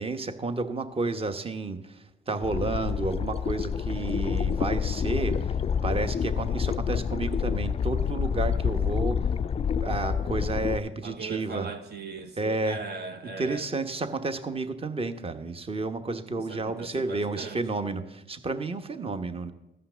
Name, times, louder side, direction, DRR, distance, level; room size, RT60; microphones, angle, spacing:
voice 1, 0.0-9.3 9.8-11.7 12.4-12.8 13.2-19.5, right 3 dB, 30° right, 9 dB, 1.1 m, -31 dB
sound 1, 2.4-10.8, left 7 dB, 30° left, 0.4 m, -28 dB
voice 2, 11.0-13.7 16.5-17.9, right 5 dB, 55° right, 5 dB, 1.1 m, -39 dB
14.0 x 5.7 x 6.8 m, 0.91 s
cardioid pair, 90°, 20 cm